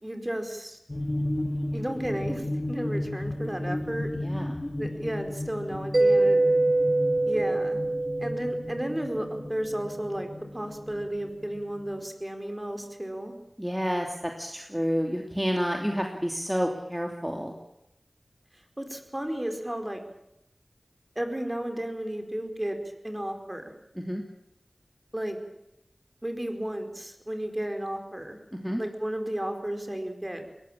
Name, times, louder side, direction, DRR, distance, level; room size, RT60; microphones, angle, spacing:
voice 1, 0.0-0.8 1.7-4.1 4.8-6.4 7.3-7.8 8.2-10.3 10.5-13.3 18.8-20.0 21.1-22.8 23.0-23.7 25.1-25.4 26.2-28.4 28.8-30.5, right 1 dB, 20° right, 6 dB, 4.5 m, -33 dB
sound 1, 0.9-12.0, left 1 dB, 30° left, 2.1 m, -34 dB
voice 2, 4.1-4.6 13.6-17.5 24.0-24.2 28.5-28.8, equal, 5° right, 2 dB, 2.9 m, -29 dB
Mallet percussion, 5.9-9.4, right 2 dB, 50° right, 2.2 m, -24 dB
22.0 x 19.0 x 8.9 m, 0.85 s
wide cardioid pair, 45°, 0 cm